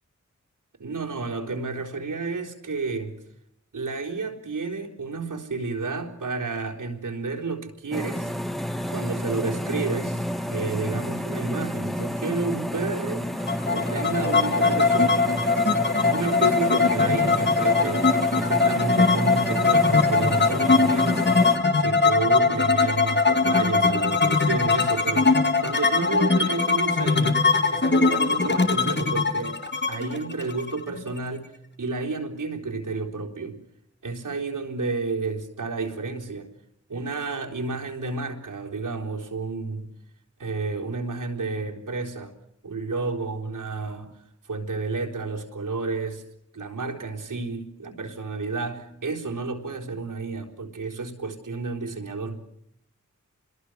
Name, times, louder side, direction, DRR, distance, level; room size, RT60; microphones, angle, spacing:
voice 1, 0.8-3.2 3.7-8.3 8.9-13.3 13.7-15.5 15.9-21.3 21.7-31.5 31.8-33.6 34.0-36.5 36.9-39.9 40.4-42.4 42.6-44.2 44.4-46.2 46.5-52.4, right 3 dB, 85° right, -1 dB, 3.9 m, -31 dB
sound 1, 7.9-21.6, equal, ahead, 2.0 m, -30 dB
sound 2, 13.5-31.2, left 4 dB, 35° left, 2.2 m, -21 dB
26.0 x 22.0 x 6.3 m, 0.76 s
cardioid pair, 45°, 31 cm